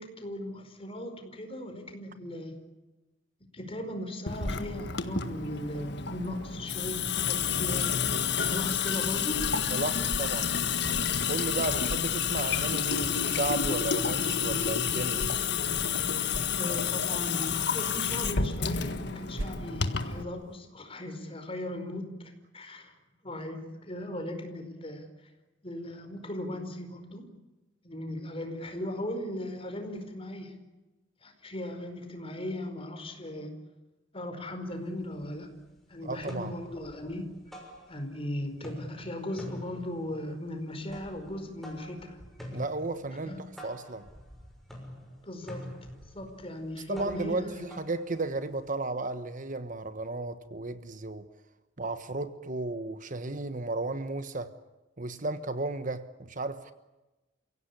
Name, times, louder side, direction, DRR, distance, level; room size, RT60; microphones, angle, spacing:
voice 1, 0.0-2.6 3.5-8.0 8.3-9.5 16.5-22.9 23.2-25.1 25.6-27.3 27.8-30.6 31.2-33.5 34.1-35.6 35.9-37.4 37.9-42.2 43.2-43.4 45.2-45.7 46.1-47.7, left 1 dB, 30° left, 4.9 m, -38 dB
Water tap faucet / Sink (filling or washing) / Drip, 4.3-20.2, left 7 dB, 60° left, 1.7 m, -30 dB
voice 2, 9.7-10.5 11.3-15.2 36.0-36.5 42.5-44.1 46.7-51.3 51.8-54.5 55.0-56.7, right 2 dB, 45° right, 1.3 m, -34 dB
sound 1, 10.0-13.3 13.6-17.1 17.9-20.6, right 1 dB, 75° right, 1.4 m, -44 dB
sound 2, 34.7-34.8 35.2-35.8 36.1-38.3 38.5-48.7, equal, ahead, 6.2 m, -47 dB
29.5 x 17.0 x 10.0 m
head